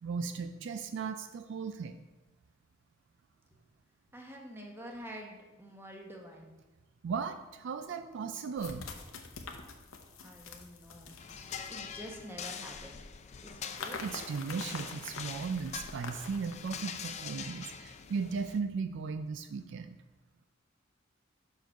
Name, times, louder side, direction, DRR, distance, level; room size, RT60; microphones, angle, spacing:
voice 1, 0.0-2.0 7.0-8.9 14.0-20.0, right 5 dB, 60° right, 9 dB, 0.3 m, -36 dB
voice 2, 4.1-6.5 10.2-11.2 11.7-13.0 13.4-14.0, equal, 10° right, 0 dB, 1.0 m, -47 dB
sound 1, 7.2-7.3 8.6-12.4 13.8-16.8, left 4 dB, 90° left, 0.8 m, -46 dB
sound 2, 11.2-18.6, left 7 dB, 35° left, 0.4 m, -44 dB
6.1 x 4.6 x 5.6 m, 1.2 s
head